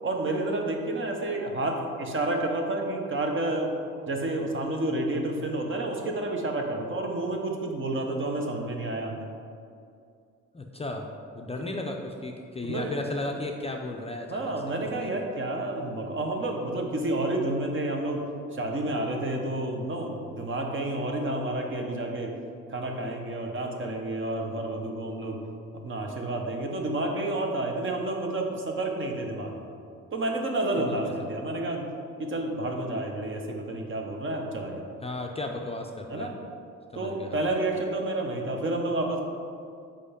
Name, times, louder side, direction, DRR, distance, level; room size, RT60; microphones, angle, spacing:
voice 1, 0.0-3.7 4.1-9.3 12.7-12.9 14.3-18.2 18.5-22.3 22.7-25.4 25.7-29.6 30.1-31.8 32.2-34.8 36.1-36.3 36.9-39.2, right 2 dB, 40° right, 2 dB, 1.0 m, -30 dB
voice 2, 10.5-11.1 11.3-14.5 14.9-15.1 30.8-31.0 35.0-36.3 36.9-37.5, left 2 dB, 20° left, 2 dB, 0.5 m, -34 dB
5.1 x 4.4 x 5.1 m, 2.4 s
cardioid pair, 90°, 30 cm